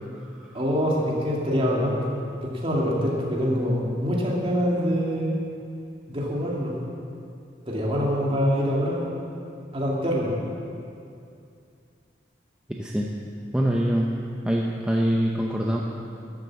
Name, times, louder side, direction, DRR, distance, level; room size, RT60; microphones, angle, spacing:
voice 1, 0.5-2.0 2.4-5.3 6.1-6.7 7.7-9.1 9.7-10.3, equal, 30° right, -3 dB, 2.3 m, -25 dB
voice 2, 12.7-13.1 13.5-14.1 14.5-15.8, equal, 5° right, -2 dB, 0.7 m, -24 dB
12.5 x 7.6 x 7.5 m, 2.5 s
head